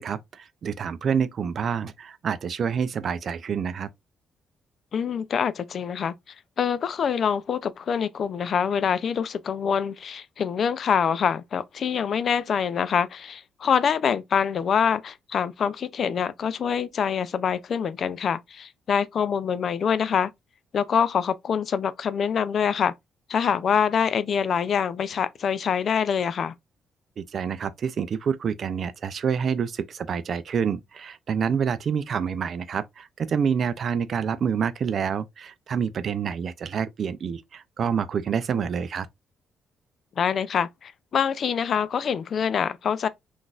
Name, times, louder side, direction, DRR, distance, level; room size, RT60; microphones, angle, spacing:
voice 1, 0.0-3.9 27.2-39.1, right 7 dB, 55° right, 0.4 m, -27 dB
voice 2, 4.9-6.1 6.6-20.3 20.7-22.9 23.3-26.5 40.2-43.1, left 7 dB, 55° left, 0.3 m, -25 dB
3.8 x 2.4 x 2.4 m
cardioid pair, 90°, 0 cm